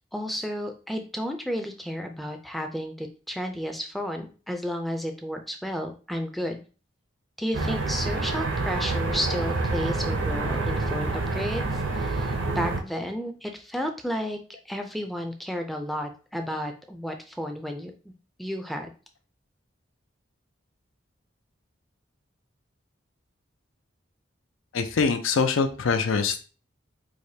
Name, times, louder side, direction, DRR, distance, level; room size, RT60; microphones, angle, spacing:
voice 1, 0.0-6.6 7.4-14.4 14.7-18.1 18.4-18.9, equal, ahead, 4 dB, 0.4 m, -32 dB
sound 1, 7.5-12.8, right 3 dB, 70° right, 0.6 m, -27 dB
voice 2, 24.7-26.4, left 5 dB, 85° left, 8 dB, 0.5 m, -24 dB
4.8 x 2.1 x 2.7 m, 0.36 s
head